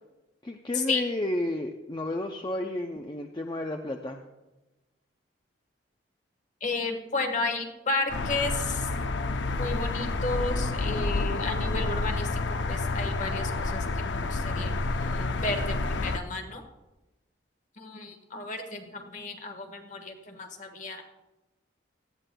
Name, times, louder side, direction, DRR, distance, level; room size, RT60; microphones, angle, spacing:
voice 1, 0.4-4.2, left 1 dB, 25° left, 4 dB, 0.5 m, -32 dB
voice 2, 6.6-8.9 9.6-16.7 17.8-21.0, left 3 dB, 40° left, 5 dB, 1.3 m, -33 dB
sound 1, 8.1-16.2, left 3 dB, 70° left, 0.6 m, -29 dB
18.0 x 13.0 x 2.3 m, 1.1 s
head